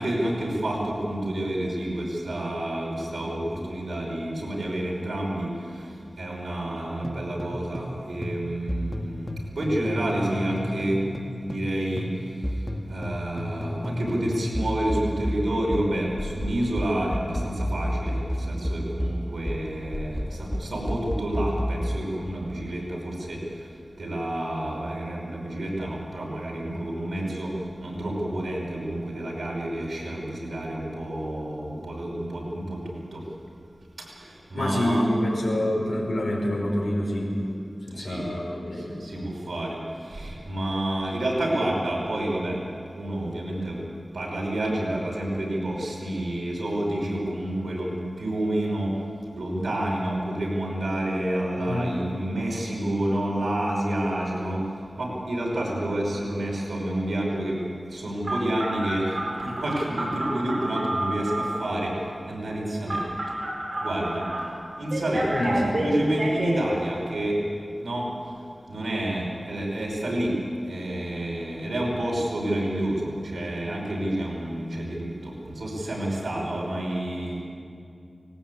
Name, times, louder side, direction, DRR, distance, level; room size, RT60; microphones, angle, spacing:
voice 1, 0.0-9.3 9.5-23.7 24.0-33.3 34.1-35.0 37.9-38.3 38.8-42.6 42.9-43.8 44.1-48.9 49.3-57.6 57.9-62.0 62.3-63.2 63.8-64.3 64.8-65.3 65.6-67.4 67.8-68.1 68.7-70.4 70.6-77.4, right 1 dB, 85° right, -3 dB, 5.7 m, -29 dB
sound 1, 7.0-8.0 8.2-11.7 12.0-22.0, equal, 15° left, 2.2 m, -31 dB
voice 2, 34.5-37.4 37.9-39.1 51.6-51.9 65.3-65.7, left 1 dB, 75° left, -3 dB, 4.9 m, -27 dB
Telephone, 58.2-61.6 62.9-64.4 64.9-66.5, right 1 dB, 60° right, 7.4 m, -29 dB
19.5 x 18.5 x 8.6 m, 2.5 s
wide cardioid pair, 55°, 0 cm